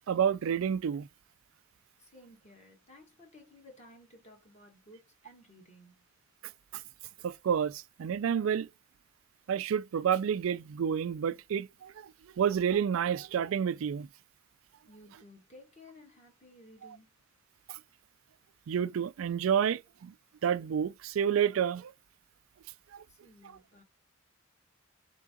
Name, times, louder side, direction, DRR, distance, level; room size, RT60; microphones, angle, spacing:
voice 1, 0.1-1.1 7.2-8.7 9.5-14.1 17.7-17.8 18.7-20.1 20.4-21.9 22.9-23.0, right 8 dB, 80° right, 0.4 m, -29 dB
voice 2, 2.0-5.9 14.8-17.1 23.1-23.8, left 1 dB, 35° left, 1.6 m, -56 dB
3.8 x 3.6 x 3.6 m
head